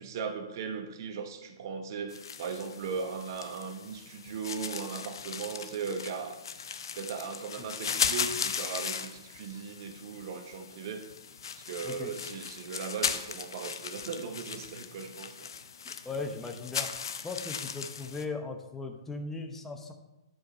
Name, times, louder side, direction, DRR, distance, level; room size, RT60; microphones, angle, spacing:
voice 1, 0.0-6.4 6.9-11.1 11.6-15.5, right 5 dB, 50° right, 7 dB, 1.0 m, -38 dB
sound 1, 2.1-18.3, left 7 dB, 70° left, 0.7 m, -37 dB
voice 2, 11.8-12.2 15.8-16.9 17.2-19.9, left 3 dB, 10° left, 4 dB, 0.9 m, -38 dB
10.5 x 5.0 x 4.3 m, 0.98 s
figure-of-eight pair, 125°, 2 cm